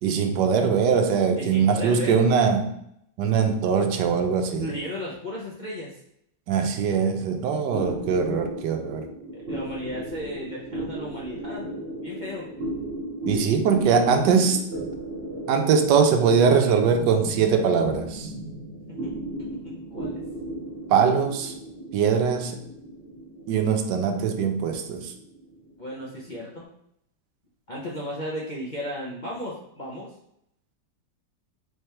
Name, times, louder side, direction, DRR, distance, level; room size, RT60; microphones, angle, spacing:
voice 1, 0.0-2.7 3.2-4.7 6.5-9.1 13.3-14.6 15.5-18.3 20.9-21.5 21.9-22.6 23.5-25.1, right 6 dB, 80° right, 6 dB, 1.2 m, -22 dB
voice 2, 1.3-2.2 4.6-5.9 9.3-11.6 12.0-12.5 18.9-19.1 19.4-19.5 19.9-20.2 25.8-26.6 27.7-30.1, equal, 40° left, -6 dB, 0.6 m, -35 dB
sound 1, 7.7-26.5, right 1 dB, 45° right, 0.9 m, -36 dB
3.5 x 3.4 x 4.3 m, 0.74 s
omnidirectional pair, 1.9 m